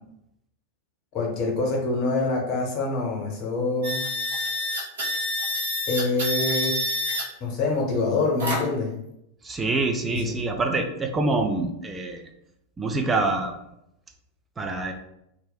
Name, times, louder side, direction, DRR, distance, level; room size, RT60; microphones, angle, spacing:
voice 1, 1.1-4.0 5.9-6.8 7.4-8.9 10.1-10.3, left 3 dB, 40° left, -1 dB, 0.9 m, -25 dB
sound 1, 3.8-7.2 8.4-8.8, left 1 dB, 60° right, 0.8 m, -27 dB
voice 2, 9.4-12.2 12.8-13.5 14.6-14.9, right 3 dB, 15° right, 4 dB, 0.4 m, -25 dB
2.4 x 2.0 x 3.8 m, 0.81 s
figure-of-eight pair, 90°, 0 cm